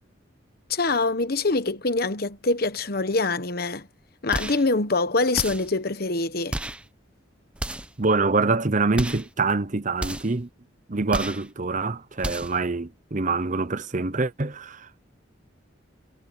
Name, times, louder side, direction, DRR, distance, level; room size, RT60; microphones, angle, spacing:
voice 1, 0.7-3.9 4.2-6.6, left 3 dB, 50° left, 1.2 m, -24 dB
sound 1, 4.3-4.7 5.3-5.8 6.5-6.9 7.5-8.0 8.9-9.3 10.0-10.4 11.1-11.5 12.2-12.6, right 1 dB, 5° right, 0.8 m, -32 dB
voice 2, 8.0-10.5 10.9-15.0, right 3 dB, 40° right, 0.9 m, -25 dB
head